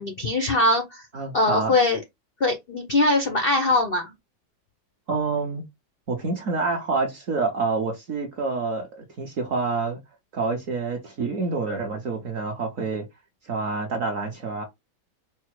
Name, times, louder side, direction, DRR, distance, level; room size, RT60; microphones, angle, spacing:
voice 1, 0.0-1.1 1.3-2.0 2.4-4.1, left 2 dB, 85° left, 0.5 m, -22 dB
voice 2, 1.1-1.7 5.1-5.6 6.1-10.0 10.3-13.1 13.4-14.6, right 4 dB, 55° right, 1.0 m, -27 dB
4.7 x 2.1 x 4.5 m
omnidirectional pair, 2.1 m